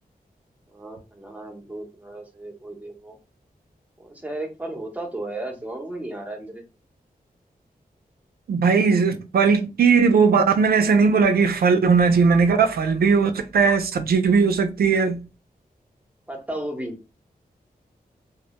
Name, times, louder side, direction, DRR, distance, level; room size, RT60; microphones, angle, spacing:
voice 1, 0.7-3.2 4.0-6.6 16.3-17.0, right 1 dB, 10° right, 0.7 m, -34 dB
voice 2, 8.5-15.2, right 5 dB, 85° right, 0.4 m, -18 dB
2.1 x 2.0 x 2.9 m
wide cardioid pair, 105°, 15 cm